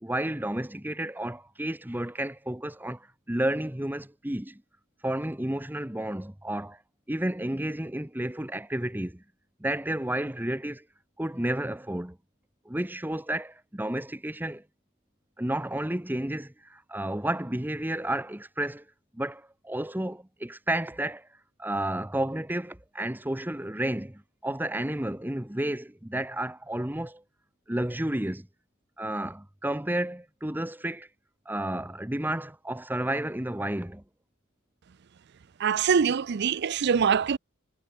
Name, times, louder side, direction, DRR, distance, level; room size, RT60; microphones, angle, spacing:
voice 1, 0.0-4.6 5.0-6.8 7.1-9.2 9.6-10.8 11.2-12.2 12.7-14.6 15.4-18.8 19.1-21.3 21.6-27.2 27.7-28.5 29.0-31.1 31.5-34.0, right 1 dB, 10° right, 1.0 m, -31 dB
voice 2, 35.6-37.4, right 6 dB, 50° right, 0.4 m, -24 dB
head